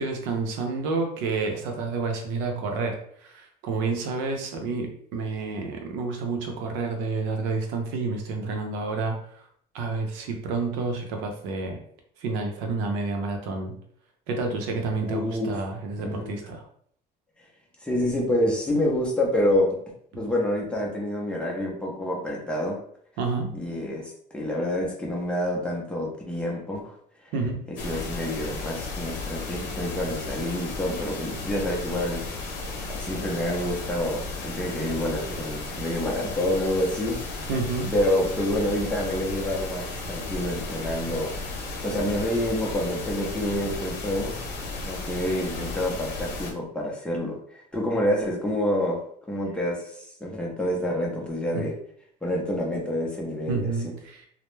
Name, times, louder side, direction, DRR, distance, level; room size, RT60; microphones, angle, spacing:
voice 1, 0.0-2.9 3.2-9.4 9.7-11.8 12.2-13.8 14.3-16.6 20.1-20.2 23.2-23.5 27.3-27.6 37.5-37.9 51.5-51.7 53.5-54.3, right 3 dB, 90° right, 3 dB, 0.6 m, -29 dB
voice 2, 15.0-15.6 16.0-16.4 17.8-19.8 20.1-22.8 23.5-26.9 27.8-32.2 32.9-37.2 37.9-41.3 41.8-44.3 44.9-49.0 49.3-51.7 52.2-53.7, left 1 dB, 5° left, -3 dB, 0.5 m, -27 dB
sound 1, 27.8-46.5, left 3 dB, 75° left, 0.6 m, -34 dB
2.2 x 2.0 x 3.1 m, 0.63 s
cardioid pair, 145°, 18 cm